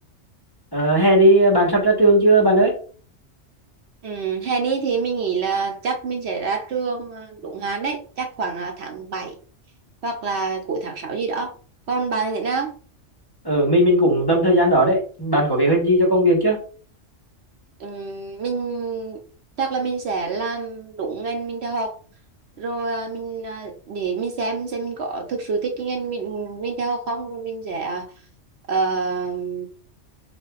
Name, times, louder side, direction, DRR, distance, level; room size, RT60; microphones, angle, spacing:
voice 1, 0.7-2.7 13.4-16.6, right 1 dB, 20° left, -4 dB, 1.1 m, -17 dB
voice 2, 4.0-9.4 10.0-11.5 11.9-12.8 17.8-19.2 19.6-22.0 22.6-28.1 28.7-29.7, right 4 dB, 65° right, 4 dB, 0.9 m, -27 dB
6.4 x 2.5 x 2.4 m, 0.41 s
omnidirectional pair, 1.3 m